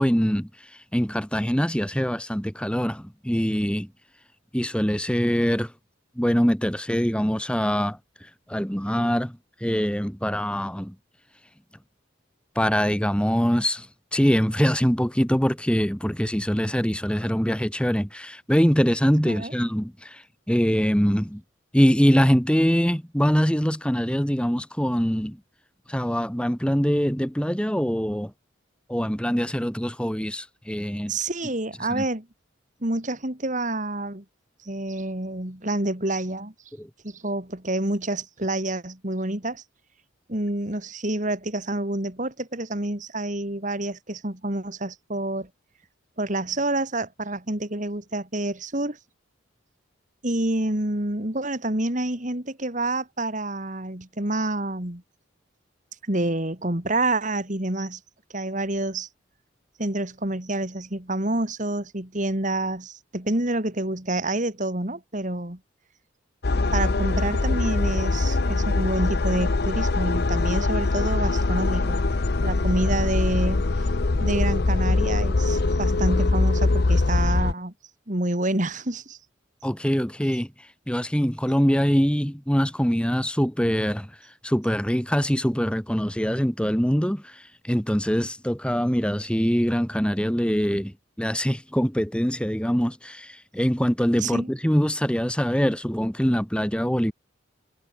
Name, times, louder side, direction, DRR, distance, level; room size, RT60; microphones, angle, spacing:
voice 1, 0.0-3.9 4.5-5.7 6.2-10.9 12.6-13.9 14.1-21.4 21.7-25.4 25.9-28.3 28.9-31.1 31.9-32.0 36.8-36.9 79.6-80.5 80.9-84.1 84.4-97.1, equal, 5° left, 2.5 m, -23 dB
voice 2, 31.1-32.3 32.8-34.2 34.6-36.5 37.0-39.6 40.3-45.5 46.2-49.0 50.2-55.0 56.1-58.0 58.3-59.1 59.8-65.6 66.7-72.0 72.4-73.7 74.2-77.7 78.1-79.2 94.2-94.5, right 1 dB, 40° right, 2.7 m, -28 dB
sound 1, 66.4-77.5, left 3 dB, 50° left, 0.7 m, -23 dB
head